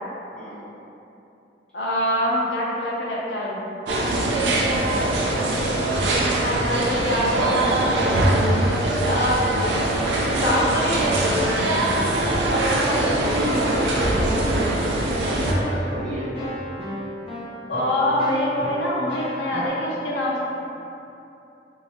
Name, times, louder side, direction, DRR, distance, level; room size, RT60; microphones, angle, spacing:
voice 1, 0.3-0.7 11.9-16.3, equal, 5° left, -13 dB, 1.1 m, -32 dB
voice 2, 1.7-3.6 6.3-7.8 9.1-9.4 10.4-11.2 17.7-20.4, left 1 dB, 85° left, -5 dB, 0.6 m, -24 dB
sound 1, 3.9-15.5, right 1 dB, 90° right, 0.5 m, -22 dB
Keyboard (musical), 10.0-19.7, equal, 35° left, 0.8 m, -34 dB
3.2 x 2.8 x 2.8 m, 2.8 s
head